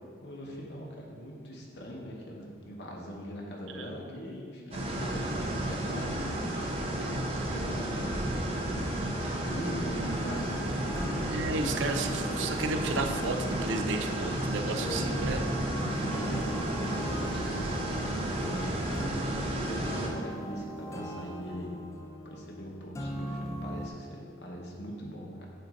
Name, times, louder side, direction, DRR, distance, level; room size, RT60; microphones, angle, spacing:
voice 1, 0.2-8.1 9.1-10.6 11.2-11.9 14.7-15.2 15.7-17.5 17.9-21.8 22.2-25.5, equal, 60° left, -1 dB, 0.9 m, -42 dB
sound 1, 4.7-20.1, right 1 dB, 30° right, 0.7 m, -32 dB
sound 2, 10.0-23.9, equal, 15° left, 0.4 m, -39 dB
voice 2, 11.3-15.4, right 3 dB, 75° right, 6 dB, 0.4 m, -33 dB
7.6 x 2.6 x 5.2 m, 2.1 s
head